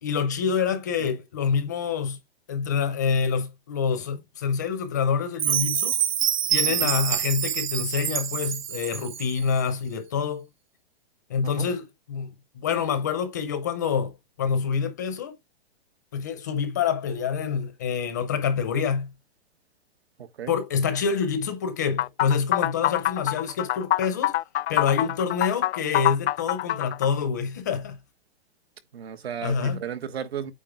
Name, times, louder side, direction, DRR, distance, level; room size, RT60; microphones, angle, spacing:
voice 1, 0.0-2.2 2.5-6.0 6.5-10.4 11.3-15.3 16.1-19.1 20.5-24.3 24.7-28.0 29.4-29.8, left 6 dB, 20° left, 0.5 m, -27 dB
Chime, 5.4-9.5, right 10 dB, 45° right, 0.9 m, -26 dB
sound 1, 22.0-27.1, left 13 dB, 80° left, 0.5 m, -25 dB
voice 2, 28.9-30.5, right 8 dB, 75° right, 1.5 m, -34 dB
8.8 x 3.7 x 4.7 m
hypercardioid pair, 175°, 32 cm